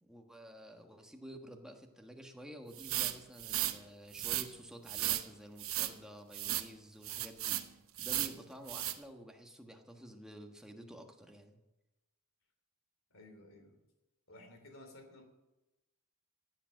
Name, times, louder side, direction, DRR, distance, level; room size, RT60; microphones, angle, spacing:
voice 1, 0.0-7.6 8.0-11.6, right 1 dB, 5° right, 2 dB, 1.4 m, -51 dB
sound 1, 2.8-3.8 4.1-4.5 4.9-5.3 5.6-5.9 6.3-6.7 7.0-7.7 8.0-8.4 8.7-9.0, right 13 dB, 65° right, 1.0 m, -35 dB
voice 2, 13.1-13.8 14.3-15.2, left 2 dB, 65° left, 5 dB, 3.1 m, -55 dB
15.0 x 8.9 x 7.6 m, 0.99 s
head